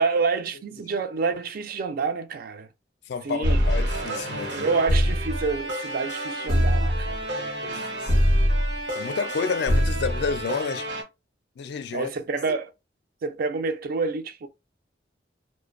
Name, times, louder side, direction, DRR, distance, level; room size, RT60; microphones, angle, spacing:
voice 1, 0.0-2.7 3.2-3.6 4.5-7.9 11.9-12.7 13.2-14.5, right 4 dB, 55° right, 0.4 m, -28 dB
voice 2, 3.1-4.7 7.6-8.1 8.9-10.9 11.6-12.1, left 5 dB, 65° left, 0.4 m, -30 dB
sound 1, 3.4-11.0, equal, 85° right, 0.9 m, -25 dB
2.4 x 2.1 x 2.4 m
head